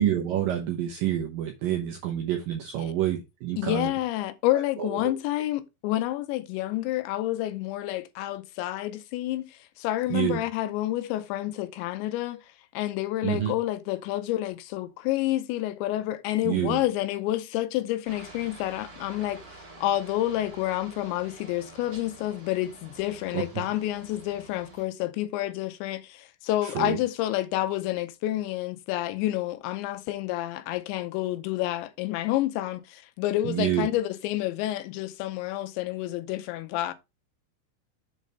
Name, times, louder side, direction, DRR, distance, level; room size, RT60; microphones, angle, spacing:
voice 1, 0.0-3.9 4.5-5.1 10.1-10.4 13.2-13.6 16.4-16.8 23.3-23.6 26.6-27.0 33.4-33.9, right 11 dB, 80° right, 2.1 m, -28 dB
voice 2, 3.6-12.4 12.7-36.9, left 15 dB, 85° left, 2.9 m, -29 dB
Aircraft, 18.0-24.8, right 3 dB, 55° right, 1.1 m, -48 dB
7.4 x 4.1 x 5.2 m
omnidirectional pair, 5.3 m